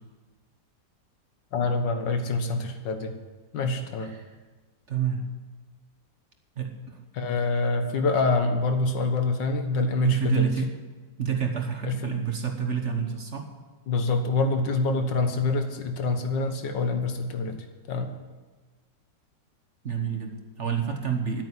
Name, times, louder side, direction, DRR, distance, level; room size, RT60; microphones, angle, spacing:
voice 1, 1.5-3.1 3.5-4.1 7.1-10.5 11.8-12.2 13.9-17.6 17.9-18.1, left 3 dB, 75° left, 7 dB, 1.9 m, -26 dB
voice 2, 4.9-5.2 6.6-7.0 10.0-10.7 11.2-13.5 19.8-21.4, right 7 dB, 45° right, 4 dB, 1.4 m, -28 dB
9.8 x 9.1 x 9.7 m, 1.3 s
omnidirectional pair, 2.0 m